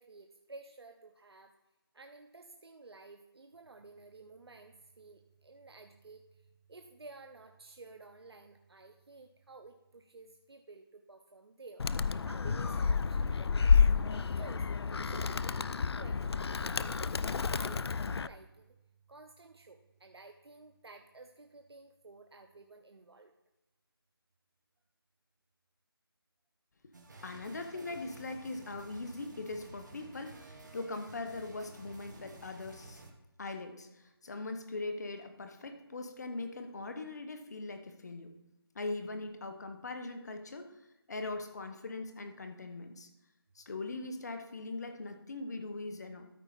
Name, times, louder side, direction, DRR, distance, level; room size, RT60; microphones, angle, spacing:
voice 1, 0.0-1.5 1.9-11.9 12.2-16.4 16.7-17.0 17.5-18.7 19.1-23.3 27.2-27.3, right 3 dB, 85° right, 5 dB, 0.9 m, -53 dB
Animal, 11.8-18.3, left 5 dB, 90° left, 0.4 m, -30 dB
sound 1, 26.9-33.1, right 2 dB, 45° right, 1.2 m, -53 dB
voice 2, 27.2-33.1 33.4-38.3 38.7-40.8 41.1-43.1 43.5-46.2, left 3 dB, 45° left, 7 dB, 1.0 m, -41 dB
13.0 x 4.6 x 4.0 m, 0.96 s
figure-of-eight pair, 170°, 13 cm